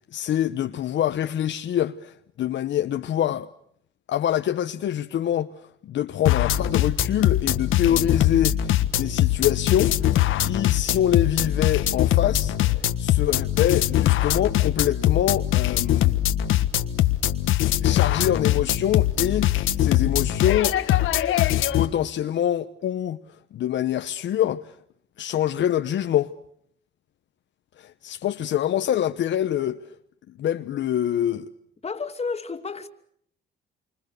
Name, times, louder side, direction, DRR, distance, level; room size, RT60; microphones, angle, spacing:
voice 1, 0.1-3.5 4.1-16.1 17.8-20.8 21.8-23.2 23.5-24.8 25.2-26.3 27.8-29.8 30.4-31.5, left 11 dB, 70° left, 1.0 m, -25 dB
sound 1, 6.3-21.9, left 12 dB, 85° left, 1.5 m, -22 dB
voice 2, 31.8-32.9, left 4 dB, 30° left, 2.7 m, -31 dB
28.0 x 25.5 x 6.7 m
cardioid pair, 90°, 20 cm